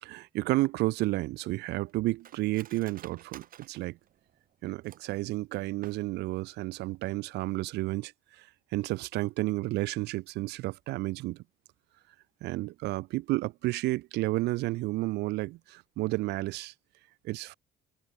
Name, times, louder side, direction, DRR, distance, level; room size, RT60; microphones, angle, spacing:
voice 1, 0.0-4.0 4.6-8.5 8.7-11.4 12.4-16.7 17.2-17.6, right 19 dB, 85° right, 1.1 m, -31 dB
Cutlery silverware, 0.8-5.2 5.7-6.4 6.7-6.8 7.1-7.5 7.8-8.0, right 11 dB, 55° right, 3.4 m, -53 dB
cardioid pair, 110°, 17 cm